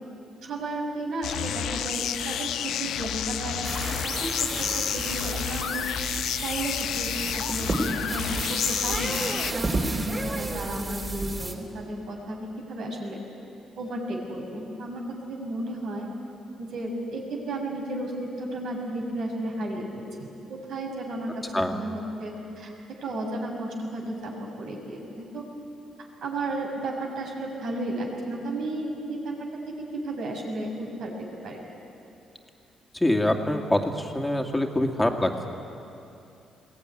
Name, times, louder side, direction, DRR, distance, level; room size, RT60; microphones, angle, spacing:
voice 1, 0.4-3.7 4.0-5.9 6.4-9.2 9.5-12.4 12.7-13.2 13.8-15.0 15.3-16.1 16.6-18.1 18.4-21.3 21.7-22.7 23.0-25.4 26.2-29.3 30.0-31.6, right 1 dB, 70° right, 0 dB, 5.6 m, -33 dB
sound 1, 1.2-9.5, left 10 dB, 80° left, 0.8 m, -30 dB
sound 2, 3.6-11.5, right 2 dB, 30° right, 3.4 m, -32 dB
voice 2, 32.9-35.5, left 1 dB, 10° left, 3 dB, 2.2 m, -25 dB
21.5 x 18.5 x 9.8 m, 2.7 s
cardioid pair, 90°, 0 cm